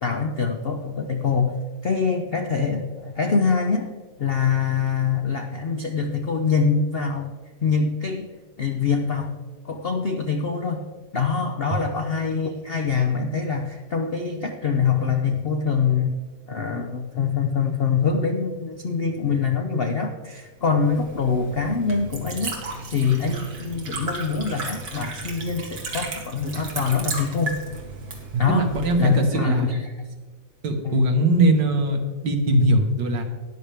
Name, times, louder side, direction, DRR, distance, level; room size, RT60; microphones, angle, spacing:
voice 1, 0.0-1.6 1.8-3.9 4.2-7.3 7.6-8.3 8.6-9.3 9.6-10.8 11.1-16.1 16.5-22.5 22.9-27.6 28.4-28.7 29.0-29.9 30.8-31.0, left 5 dB, 65° left, 4 dB, 0.6 m, -24 dB
Liquid, 20.6-29.2, right 3 dB, 60° right, 2.2 m, -35 dB
voice 2, 28.3-29.8 30.6-33.2, right 1 dB, 75° right, 4 dB, 2.0 m, -21 dB
13.0 x 10.5 x 3.4 m, 1.4 s
omnidirectional pair, 1.9 m